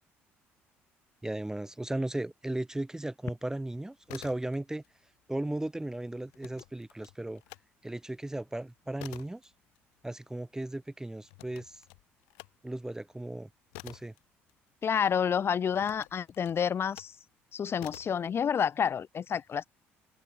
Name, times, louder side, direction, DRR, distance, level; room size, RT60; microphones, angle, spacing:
voice 1, 1.2-4.8 5.3-7.4 7.8-9.4 10.0-11.8 12.6-13.5 13.8-14.1, right 1 dB, 10° right, 0.6 m, -36 dB
sound 1, 3.9-4.9 5.2-7.7 8.1-15.1 15.7-17.2 17.8-18.3, left 40 dB or more, 85° left, 3.1 m, -51 dB
voice 2, 14.8-17.2 17.5-19.7, left 7 dB, 45° left, 0.5 m, -29 dB
hypercardioid pair, 65°, 6 cm